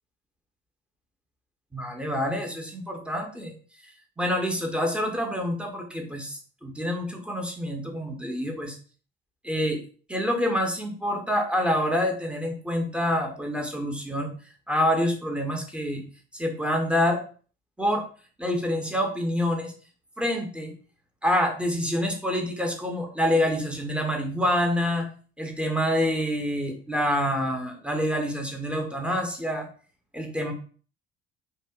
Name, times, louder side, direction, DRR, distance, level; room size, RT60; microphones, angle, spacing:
voice 1, 1.7-3.5 3.8-8.8 9.4-9.8 10.1-14.3 14.7-16.0 16.3-17.2 17.8-18.0 18.4-19.7 20.2-20.7 21.2-25.1 25.4-29.7 30.1-30.5, equal, 5° right, 2 dB, 0.6 m, -27 dB
2.8 x 2.4 x 2.2 m, 0.41 s
figure-of-eight pair, 55°, 32 cm